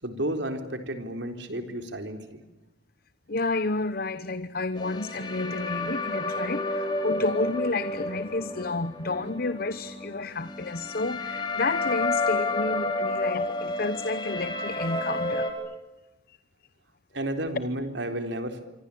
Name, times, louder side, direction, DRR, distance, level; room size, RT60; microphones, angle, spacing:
voice 1, 0.0-2.4 13.0-13.1 17.1-18.6, right 1 dB, 65° right, 4.0 m, -32 dB
voice 2, 3.3-15.7 16.3-16.4, left 3 dB, 50° left, 0.9 m, -31 dB
sound 1, 4.8-15.5, left 2 dB, 25° left, 4.5 m, -30 dB
26.5 x 25.5 x 8.7 m
head